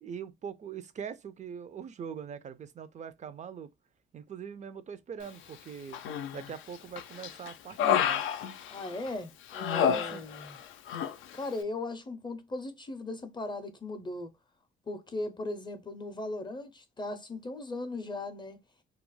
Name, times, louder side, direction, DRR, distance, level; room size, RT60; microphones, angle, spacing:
voice 1, 0.0-3.7 4.1-6.0 6.3-8.2 9.9-10.3, right 7 dB, 35° right, 0.4 m, -42 dB
Human voice, 5.9-6.5 7.0-9.1 9.5-10.6 10.9-11.1, left 9 dB, 80° left, 0.4 m, -29 dB
voice 2, 8.7-10.6 11.3-14.3 14.9-18.6, left 2 dB, 25° left, 0.5 m, -38 dB
2.3 x 2.0 x 3.0 m
cardioid pair, 90°, 20 cm